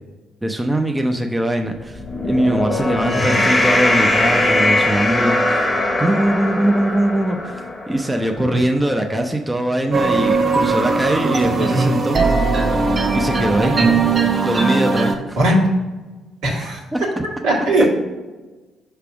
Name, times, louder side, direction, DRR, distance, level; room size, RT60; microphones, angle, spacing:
voice 1, 0.4-5.7 6.0-7.6 7.9-12.3 13.1-13.8 14.4-15.4 16.9-17.2, right 1 dB, 15° right, 4 dB, 0.6 m, -21 dB
sound 1, 1.9-8.4, left 1 dB, 25° left, 0.9 m, -20 dB
voice 2, 3.1-3.4 8.4-8.5 11.4-11.9 13.6-13.9 15.4-15.6 16.4-16.8 17.4-17.9, right 1 dB, 70° right, -4 dB, 1.6 m, -19 dB
sound 2, 9.9-15.1, right 4 dB, 45° right, 1.0 m, -19 dB
5.9 x 3.4 x 5.8 m, 1.2 s
hypercardioid pair, 45°, 0 cm